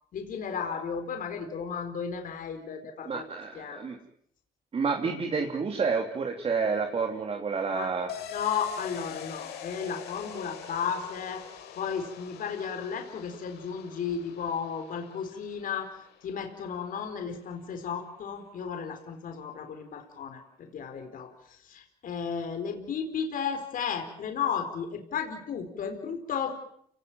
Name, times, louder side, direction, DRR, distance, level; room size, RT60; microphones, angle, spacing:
voice 1, 0.1-3.3 3.5-3.8 7.7-7.9 8.3-11.4 11.8-26.6, left 7 dB, 55° left, 5 dB, 4.3 m, -34 dB
voice 2, 3.1-4.0 4.7-8.1, right 5 dB, 35° right, 4 dB, 3.1 m, -29 dB
sound 1, 8.1-17.5 17.8-17.9, left 8 dB, 80° left, 5.1 m, -45 dB
29.5 x 18.0 x 9.1 m, 0.69 s
cardioid pair, 110°, 17 cm